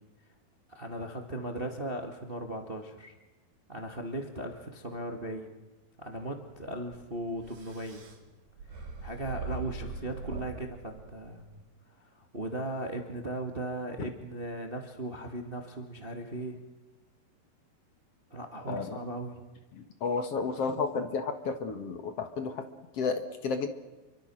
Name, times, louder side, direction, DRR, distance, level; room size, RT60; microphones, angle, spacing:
voice 1, 0.7-3.1 3.7-5.5 6.0-8.0 8.8-11.4 12.0-16.6 18.3-19.4, right 1 dB, 25° right, 4 dB, 1.2 m, -37 dB
sound 1, 6.5-11.6, right 4 dB, 55° right, 5.0 m, -42 dB
voice 2, 18.7-19.0 19.8-22.7 22.9-23.7, left 4 dB, 55° left, 8 dB, 1.8 m, -32 dB
28.5 x 24.0 x 6.3 m, 1.2 s
omnidirectional pair, 4.7 m